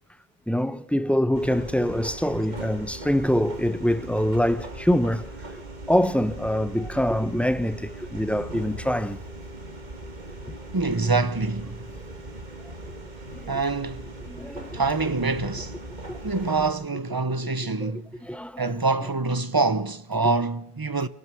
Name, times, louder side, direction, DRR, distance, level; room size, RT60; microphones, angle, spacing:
voice 1, 0.5-9.2 10.5-10.6 12.0-12.1 13.3-13.5 14.2-14.8 16.1-16.2 17.8-17.9 18.2-18.7, equal, ahead, 0.5 m, -25 dB
sound 1, 1.3-16.7, right 1 dB, 45° right, 2.0 m, -39 dB
voice 2, 10.7-11.8 13.5-14.1 14.7-15.8 16.2-18.1 18.6-21.1, right 3 dB, 25° right, 0.7 m, -25 dB
24.0 x 20.0 x 6.2 m
omnidirectional pair, 1.1 m